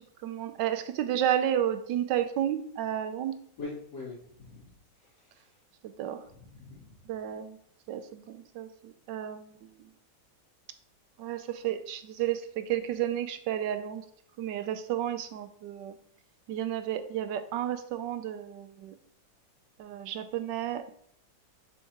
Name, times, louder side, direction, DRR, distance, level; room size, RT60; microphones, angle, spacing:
voice 1, 0.2-3.3 6.0-6.2 7.1-7.6 7.9-9.6 11.2-14.0 14.4-16.0 16.5-18.9 19.8-20.9, right 11 dB, 80° right, 9 dB, 1.3 m, -32 dB
voice 2, 3.6-4.7 5.2-5.5 6.3-6.9, left 3 dB, 60° left, -7 dB, 3.5 m, -43 dB
7.1 x 4.6 x 2.9 m, 0.66 s
omnidirectional pair, 1.9 m